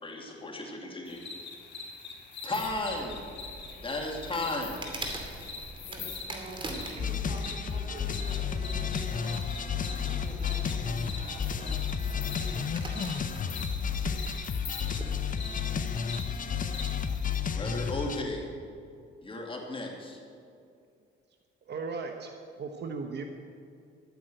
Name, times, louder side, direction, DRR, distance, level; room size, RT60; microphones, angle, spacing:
voice 1, 0.0-1.2 1.8-1.9 2.4-3.2 3.8-4.8 17.6-18.6 19.2-20.2, left 2 dB, 25° left, 0 dB, 2.5 m, -35 dB
sound 1, 1.1-17.4, left 4 dB, 60° left, 2.4 m, -44 dB
sound 2, 2.6-15.2, right 1 dB, 25° right, 2.5 m, -44 dB
voice 2, 5.9-12.7, right 1 dB, 40° right, 2 dB, 3.3 m, -46 dB
sound 3, 7.0-18.2, left 7 dB, 40° left, 0.9 m, -32 dB
voice 3, 21.7-22.3 22.6-23.2, right 4 dB, 60° right, 4 dB, 1.1 m, -36 dB
11.5 x 9.6 x 7.8 m, 2.4 s
cardioid pair, 90°, 20 cm